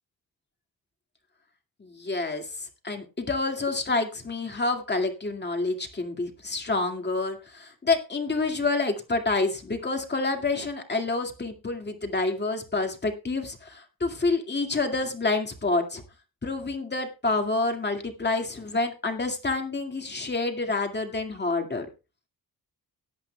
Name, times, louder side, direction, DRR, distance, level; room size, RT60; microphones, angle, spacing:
voice 1, 1.8-16.0 16.4-21.9, left 3 dB, 25° left, 4 dB, 2.2 m, -28 dB
18.0 x 11.0 x 2.3 m, 0.30 s
wide cardioid pair, 135°, 37 cm